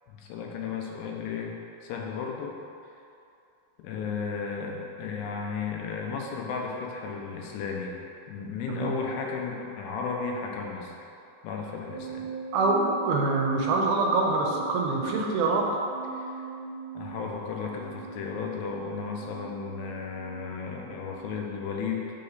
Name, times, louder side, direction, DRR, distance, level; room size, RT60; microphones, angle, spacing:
voice 1, 0.1-1.5 1.8-2.6 3.8-8.0 8.3-10.9 11.4-12.3 16.1-16.5 17.0-22.0, left 5 dB, 85° left, 0 dB, 2.4 m, -34 dB
sound 1, 11.9-21.6, right 6 dB, 70° right, 2.4 m, -40 dB
voice 2, 12.5-15.8, right 3 dB, 85° right, 0 dB, 2.5 m, -25 dB
8.3 x 2.9 x 4.0 m, 2.6 s
omnidirectional pair, 4.2 m